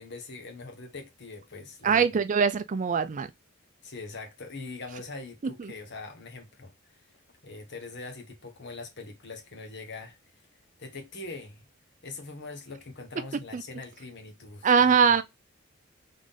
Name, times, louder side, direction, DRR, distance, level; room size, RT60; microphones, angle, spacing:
voice 1, 0.0-2.0 3.8-10.4 10.8-11.6 12.0-15.2, left 3 dB, 60° left, 1.4 m, -43 dB
voice 2, 1.8-3.3 13.5-13.6 14.6-15.2, right 6 dB, 40° right, 0.4 m, -22 dB
3.9 x 3.7 x 3.5 m
head